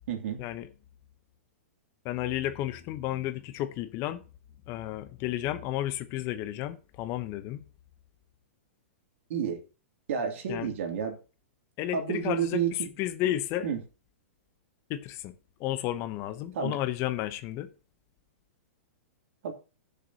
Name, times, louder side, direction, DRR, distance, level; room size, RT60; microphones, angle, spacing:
voice 1, 0.1-0.4 9.3-9.6 10.1-11.2 11.9-12.9 13.6-13.8 16.5-16.8 19.4-19.5, right 7 dB, 65° right, 2.9 m, -30 dB
voice 2, 2.0-4.2 4.7-7.6 10.5-10.7 11.8-13.7 14.9-15.3 15.6-17.7, left 13 dB, 35° left, 0.9 m, -32 dB
16.5 x 6.9 x 2.9 m
hypercardioid pair, 135°, 7 cm